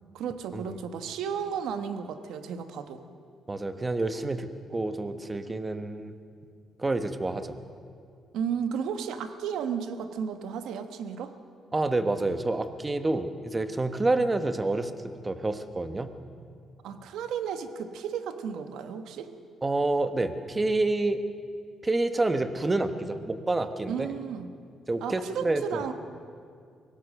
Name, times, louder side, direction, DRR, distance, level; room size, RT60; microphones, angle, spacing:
voice 1, 0.1-3.0 8.3-11.3 16.8-19.3 23.9-24.5 25.0-25.9, right 7 dB, 85° right, 9 dB, 1.2 m, -33 dB
voice 2, 3.5-6.1 6.8-7.6 11.7-16.1 19.6-21.2 21.8-24.1 24.9-25.8, right 2 dB, 20° right, 9 dB, 1.1 m, -28 dB
24.0 x 17.5 x 6.5 m, 2.3 s
cardioid pair, 135°, 0 cm